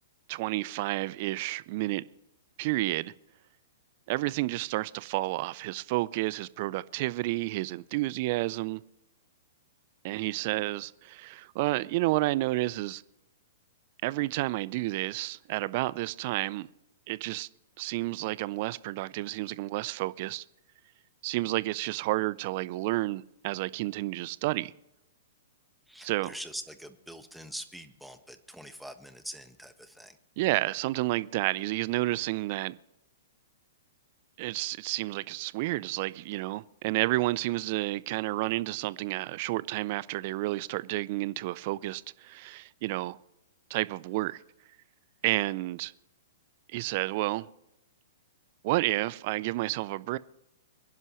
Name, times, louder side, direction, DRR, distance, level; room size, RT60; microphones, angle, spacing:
voice 1, 0.3-2.0 2.6-3.1 4.1-8.8 10.0-13.0 14.0-16.7 17.1-17.5 17.8-20.4 21.2-24.7 26.0-26.3 30.4-32.8 34.4-43.2 43.7-44.4 45.2-45.9 46.7-47.5 48.6-50.2, right 19 dB, 45° right, 0.5 m, -30 dB
voice 2, 25.9-30.2, equal, ahead, 1.3 m, -44 dB
23.5 x 11.0 x 3.1 m
figure-of-eight pair, 115°, 0 cm